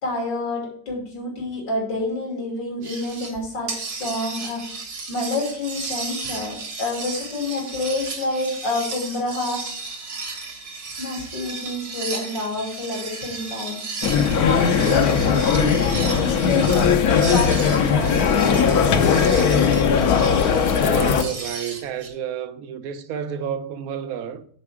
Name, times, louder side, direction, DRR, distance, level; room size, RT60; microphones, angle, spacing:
voice 1, 0.0-4.6 5.1-9.6 11.0-13.8 14.3-17.0 17.2-19.2, left 2 dB, 85° left, 3.5 m, -28 dB
sound 1, 2.8-3.4 3.7-22.1, right 4 dB, 80° right, 2.4 m, -34 dB
sound 2, 14.0-21.2, left 6 dB, 65° left, 1.2 m, -19 dB
voice 2, 20.8-24.5, right 8 dB, 65° right, 1.1 m, -30 dB
9.7 x 4.7 x 4.9 m
omnidirectional pair, 1.9 m